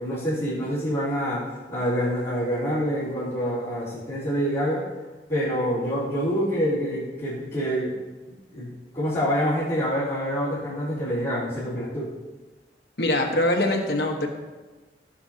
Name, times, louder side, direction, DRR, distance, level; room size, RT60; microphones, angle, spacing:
voice 1, 0.0-4.9 5.3-7.9 8.5-12.1, equal, 20° left, -16 dB, 3.4 m, -26 dB
voice 2, 13.0-14.3, left 1 dB, 60° left, 2 dB, 1.4 m, -23 dB
17.0 x 7.1 x 2.9 m, 1.3 s
head